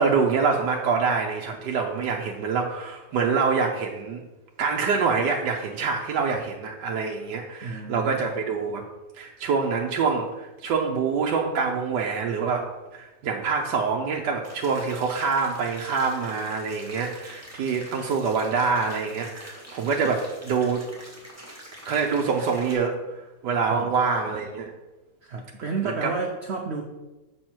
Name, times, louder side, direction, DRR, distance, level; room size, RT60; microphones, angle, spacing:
voice 1, 0.0-4.2 4.6-8.8 9.2-20.8 21.9-24.7 25.8-26.1, right 5 dB, 85° right, 1 dB, 1.3 m, -25 dB
voice 2, 7.6-8.2 23.7-23.9 25.2-26.8, right 4 dB, 55° right, 3 dB, 0.7 m, -31 dB
sound 1, 14.4-22.7, equal, 10° right, 1.8 m, -45 dB
7.6 x 6.4 x 4.4 m, 1.1 s
omnidirectional pair, 1.8 m